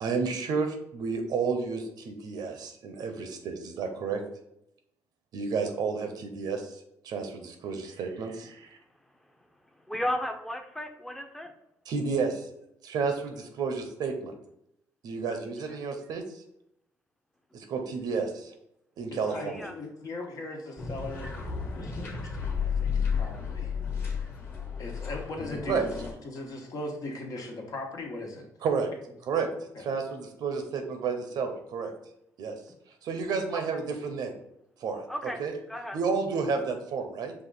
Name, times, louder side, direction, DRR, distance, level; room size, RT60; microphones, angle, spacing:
voice 1, 0.0-4.2 5.3-6.7 7.0-8.6 11.9-12.4 12.8-14.3 15.0-16.2 17.5-18.5 19.0-19.7 25.7-25.9 28.6-28.9 29.2-29.5 29.8-31.9 32.4-32.6 33.0-34.3 34.8-35.0 35.4-35.5 35.9-37.3, right 5 dB, 75° right, 6 dB, 0.8 m, -31 dB
voice 2, 9.9-11.5 19.5-19.7 35.1-35.4 35.7-36.0, equal, 5° left, 4 dB, 0.7 m, -33 dB
voice 3, 19.2-21.4 21.8-24.3 24.8-25.9 26.2-28.5 29.7-29.8, left 2 dB, 60° left, 1 dB, 1.2 m, -39 dB
sound 1, 20.8-26.1, left 6 dB, 30° left, 1.4 m, -32 dB
5.3 x 2.5 x 3.9 m, 0.78 s
cardioid pair, 90°, 7 cm